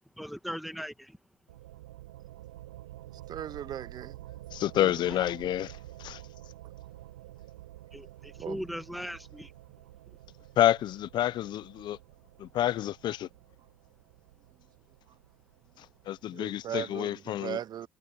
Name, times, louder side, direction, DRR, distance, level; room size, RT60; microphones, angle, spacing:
voice 1, 0.2-1.2 5.1-5.3 7.9-9.5, equal, ahead, 2.0 m, -39 dB
sound 1, 1.5-16.9, right 15 dB, 85° right, 5.1 m, -49 dB
voice 2, 3.3-4.2 4.8-4.9 8.4-8.6 16.3-17.9, right 10 dB, 50° right, 0.8 m, -38 dB
voice 3, 4.5-6.2 10.6-12.0 12.4-13.3 15.8-17.6, left 12 dB, 55° left, 0.9 m, -29 dB
hypercardioid pair, 60°, 9 cm